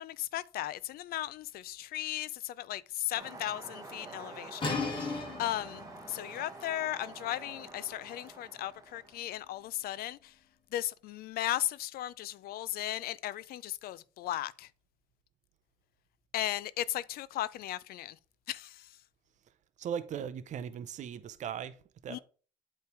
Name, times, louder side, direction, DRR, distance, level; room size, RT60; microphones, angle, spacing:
voice 1, 0.0-10.3 10.7-14.7 16.3-18.2 18.5-19.0 22.1-22.2, left 13 dB, 65° left, 0.4 m, -36 dB
sound 1, 3.1-9.3, right 3 dB, 20° right, 1.0 m, -48 dB
sound 2, 4.6-10.2, left 3 dB, 30° left, 1.6 m, -40 dB
voice 2, 19.8-21.8 22.0-22.2, right 8 dB, 45° right, 0.6 m, -38 dB
8.3 x 3.2 x 4.6 m
cardioid pair, 110°, 17 cm